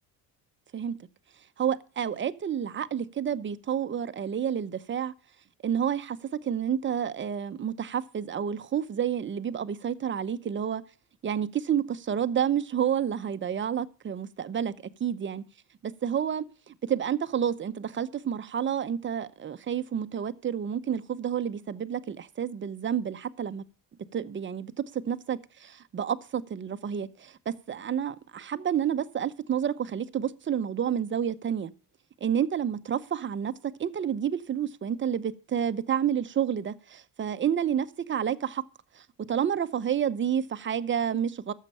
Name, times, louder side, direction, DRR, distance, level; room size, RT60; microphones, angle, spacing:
voice 1, 1.6-5.1 5.6-6.2 6.4-10.8 11.2-14.7 15.0-15.4 15.8-23.6 24.1-31.7 32.2-33.5 33.8-38.6 39.0-41.5, right 8 dB, 30° right, 0.8 m, -29 dB
12.5 x 7.5 x 5.5 m
cardioid pair, 110°, 36 cm